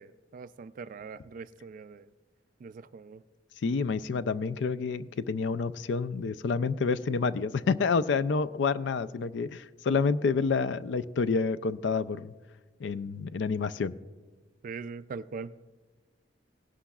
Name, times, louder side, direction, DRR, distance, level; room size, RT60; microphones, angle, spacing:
voice 1, 0.0-2.1 2.6-3.2 14.6-15.5, right 5 dB, 50° right, 14 dB, 0.3 m, -42 dB
voice 2, 3.6-12.3 12.8-14.0, left 4 dB, 75° left, 15 dB, 0.4 m, -28 dB
17.5 x 11.5 x 2.3 m, 1.3 s
head